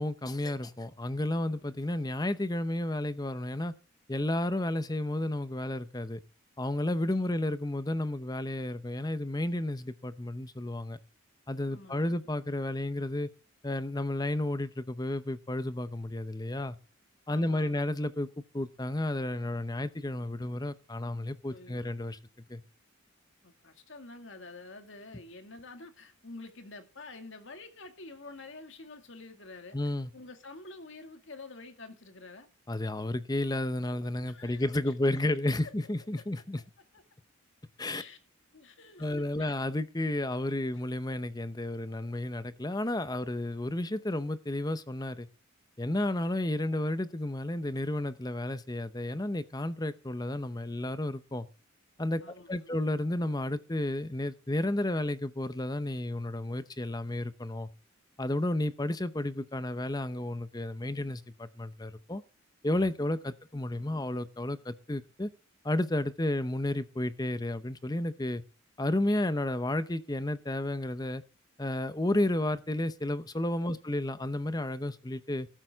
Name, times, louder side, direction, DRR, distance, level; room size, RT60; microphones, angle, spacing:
voice 1, 0.0-3.7 4.1-6.2 6.6-11.0 11.5-13.3 13.6-16.8 17.3-18.3 18.5-22.2 22.5-22.6 29.7-30.1 32.7-36.6 37.8-38.0 39.0-45.3 45.8-51.5 52.0-52.2 52.5-57.7 58.2-62.2 62.6-65.3 65.6-68.4 68.8-71.2 71.6-75.5, left 1 dB, 20° left, 0.7 m, -32 dB
voice 2, 11.7-12.2 17.3-17.8 21.5-21.9 23.4-29.8 30.1-32.5 34.3-34.9 35.6-35.7 36.9-37.0 37.9-38.2 38.5-39.5 52.2-52.7 73.7-73.8, left 3 dB, 60° left, 2.2 m, -48 dB
14.0 x 12.5 x 3.6 m
head